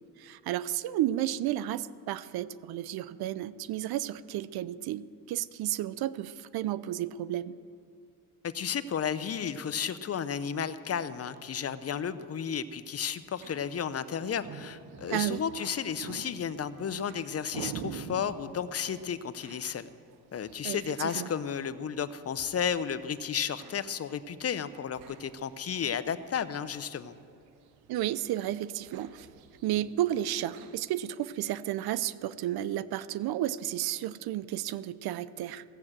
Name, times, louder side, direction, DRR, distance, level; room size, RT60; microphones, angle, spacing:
voice 1, 0.2-7.6 15.1-15.4 20.6-21.3 27.9-29.3 29.6-35.6, right 13 dB, 75° right, 17 dB, 0.6 m, -32 dB
voice 2, 8.4-19.9 20.3-27.1, left 7 dB, 40° left, 13 dB, 0.7 m, -33 dB
sound 1, 13.2-30.8, right 8 dB, 90° right, 0.9 m, -48 dB
sound 2, 17.7-18.0 20.3-20.8 22.4-22.6 24.9-25.5, right 2 dB, 45° right, 2.7 m, -58 dB
16.5 x 7.8 x 7.4 m, 2.4 s
cardioid pair, 85°, 38 cm